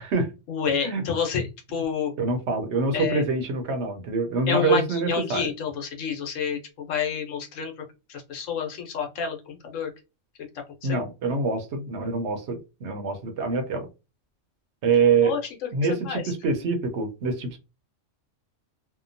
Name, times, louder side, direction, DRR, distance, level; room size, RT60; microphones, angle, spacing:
voice 1, 0.5-2.1 2.9-3.2 4.5-7.7 8.1-9.9 10.8-11.0 15.2-15.7 16.0-16.2, left 7 dB, 75° left, 1.1 m, -29 dB
voice 2, 2.2-5.5 10.8-13.9 14.8-15.4 15.7-17.6, right 4 dB, 65° right, 0.9 m, -25 dB
2.8 x 2.1 x 2.5 m
omnidirectional pair, 1.3 m